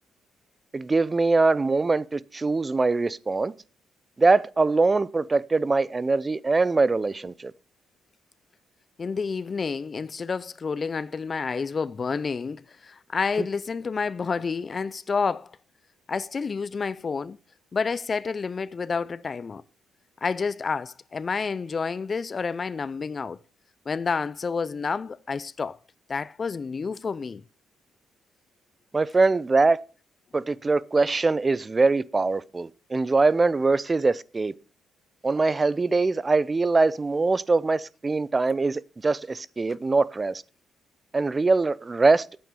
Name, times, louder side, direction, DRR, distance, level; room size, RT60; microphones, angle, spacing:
voice 1, 0.7-3.5 4.2-7.5 28.9-29.8 30.3-34.5 35.2-40.4 41.1-42.3, right 3 dB, 25° right, 0.5 m, -22 dB
voice 2, 9.0-15.5 16.1-17.4 17.7-19.6 20.2-23.4 23.9-25.8 26.1-27.4, left 5 dB, 35° left, 0.4 m, -29 dB
8.8 x 8.6 x 5.2 m
cardioid pair, 90°, 0 cm